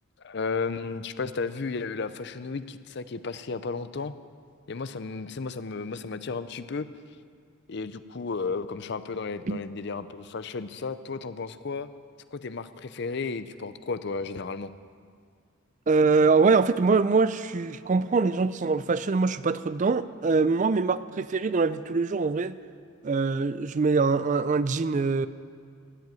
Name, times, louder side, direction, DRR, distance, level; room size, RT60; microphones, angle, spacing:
voice 1, 0.2-4.1 4.7-6.9 7.7-11.9 12.3-14.7, left 4 dB, 55° left, 13 dB, 0.5 m, -33 dB
voice 2, 15.9-22.6 23.0-25.3, right 4 dB, 35° right, 15 dB, 0.4 m, -23 dB
13.5 x 7.8 x 9.1 m, 2.1 s
head